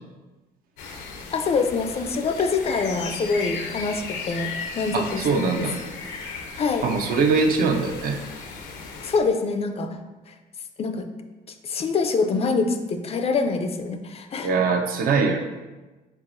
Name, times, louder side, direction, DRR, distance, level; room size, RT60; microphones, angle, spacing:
sound 1, 0.8-9.2, left 4 dB, 85° left, 0.7 m, -36 dB
voice 1, 1.3-5.7 6.6-6.8 9.0-10.0 10.3-10.4 10.8-11.1 11.6-14.5, left 4 dB, 35° left, 6 dB, 0.4 m, -25 dB
voice 2, 4.9-5.7 6.8-8.2 14.4-15.4, right 4 dB, 60° right, 4 dB, 0.6 m, -22 dB
4.6 x 3.8 x 2.5 m, 1.2 s
cardioid pair, 110°, 17 cm